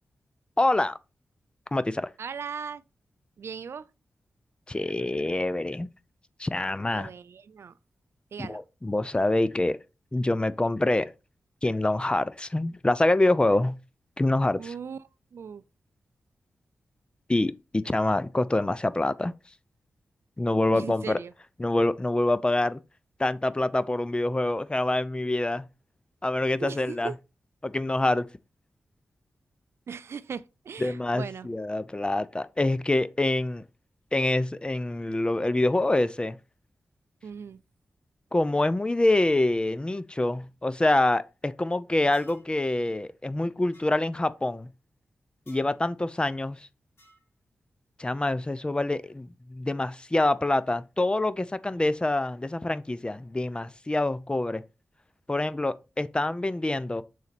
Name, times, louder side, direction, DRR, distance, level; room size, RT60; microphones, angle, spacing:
voice 1, 0.6-1.0 1.7-2.1 4.7-5.9 6.4-7.1 8.5-9.8 10.1-11.1 11.6-13.7 14.2-14.6 17.3-19.3 20.4-21.2 21.6-22.8 23.2-25.6 26.2-27.1 27.6-28.3 30.8-33.6 34.1-36.4 38.3-44.7 45.5-46.7 48.0-54.6 55.3-57.0, left 2 dB, 20° left, 0.5 m, -26 dB
voice 2, 2.2-2.8 3.4-3.9 6.9-7.8 8.3-8.6 14.6-15.6 20.7-21.3 26.6-27.2 29.9-31.5 37.2-37.6, right 6 dB, 70° right, 0.4 m, -38 dB
sound 1, 42.1-42.5 43.7-43.9 45.5-45.7 47.0-47.3, equal, 70° left, 3.9 m, -56 dB
6.4 x 4.0 x 4.1 m
cardioid pair, 55°, 5 cm